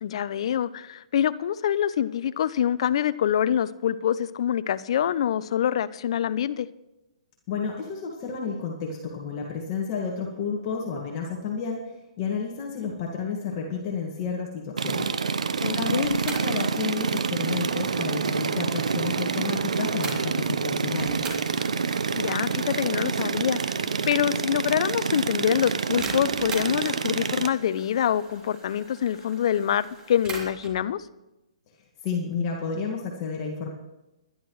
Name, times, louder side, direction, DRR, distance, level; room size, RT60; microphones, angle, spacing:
voice 1, 0.0-6.7 15.6-16.1 21.8-23.6 24.1-31.1, left 9 dB, 55° left, 15 dB, 0.6 m, -25 dB
voice 2, 7.5-15.1 15.8-21.2 32.0-33.7, left 5 dB, 35° left, 0 dB, 1.9 m, -31 dB
sound 1, 14.8-27.5, right 5 dB, 85° right, 0.9 m, -27 dB
sound 2, 16.0-20.5 21.0-30.8, right 3 dB, 20° right, 3.0 m, -43 dB
22.5 x 11.0 x 3.2 m, 0.98 s
hypercardioid pair, 145°, 4 cm